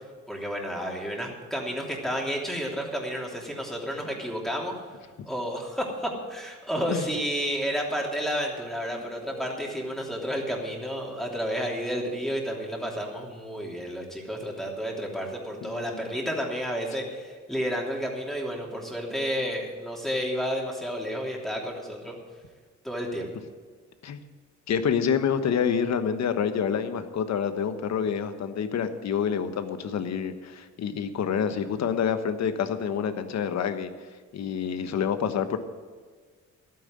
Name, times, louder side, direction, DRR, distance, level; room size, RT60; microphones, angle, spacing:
voice 1, 0.3-4.7 5.3-22.2 22.8-23.3, equal, ahead, -2 dB, 3.2 m, -31 dB
voice 2, 15.6-16.0 24.0-24.2 24.7-33.9 34.3-35.6, left 7 dB, 60° left, 9 dB, 1.2 m, -27 dB
12.0 x 9.3 x 7.7 m, 1.5 s
cardioid pair, 90°, 30 cm